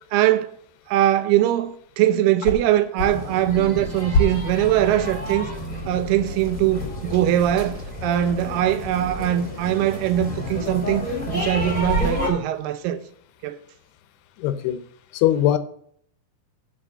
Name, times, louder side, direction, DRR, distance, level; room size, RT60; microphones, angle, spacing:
voice 1, 0.1-0.5 0.9-5.5 5.9-13.0 13.4-13.6, right 12 dB, 80° right, 2.7 m, -21 dB
sound 1, 2.0-7.1, left 1 dB, 70° left, 1.4 m, -30 dB
sound 2, 3.0-12.3, left 1 dB, 15° left, 1.3 m, -30 dB
sound 3, 3.4-9.2, right 1 dB, 55° right, 3.7 m, -39 dB
voice 2, 14.4-14.8 15.1-15.6, left 12 dB, 85° left, 2.8 m, -20 dB
10.0 x 4.4 x 7.3 m
omnidirectional pair, 4.6 m